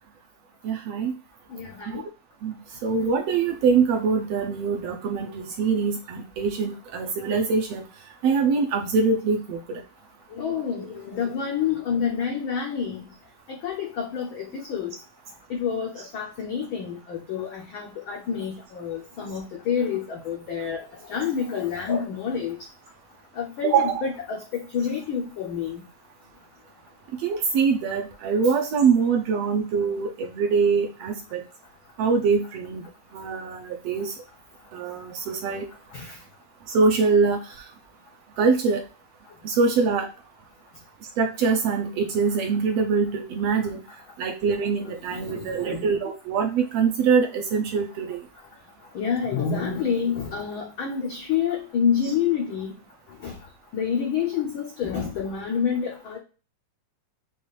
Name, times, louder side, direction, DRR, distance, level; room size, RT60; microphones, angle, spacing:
voice 1, 0.6-1.1 1.9-2.0 2.4-2.5 2.8-7.8 8.2-9.8 23.6-24.0 27.2-31.4 32.0-32.8 33.1-34.2 34.7-35.6 36.7-37.4 38.4-38.8 39.4-40.1 41.2-43.8 44.2-48.2 52.0-52.1, right 5 dB, 75° right, 3 dB, 1.6 m, -23 dB
voice 2, 1.5-2.0 10.4-13.0 13.6-14.9 15.6-20.8 21.1-22.6 23.4-25.8 35.9-36.0 45.4-45.7 48.9-52.7 53.2-53.3 53.7-56.2, left 7 dB, 90° left, 1 dB, 1.1 m, -28 dB
7.0 x 2.5 x 3.1 m, 0.35 s
omnidirectional pair, 3.4 m